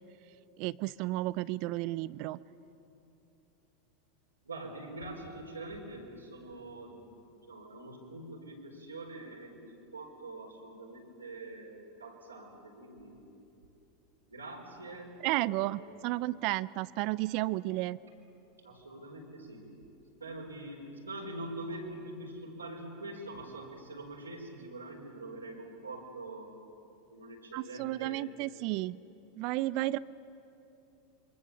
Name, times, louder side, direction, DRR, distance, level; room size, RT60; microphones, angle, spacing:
voice 1, 0.6-2.4 15.2-18.0 27.5-29.0 29.3-30.0, right 18 dB, 50° right, 19 dB, 0.5 m, -32 dB
voice 2, 4.4-13.3 14.3-15.8 18.6-19.7 20.2-26.6 27.1-28.4, right 2 dB, 90° right, -1 dB, 4.3 m, -44 dB
27.5 x 23.5 x 7.1 m, 2.9 s
figure-of-eight pair, 85°, 0 cm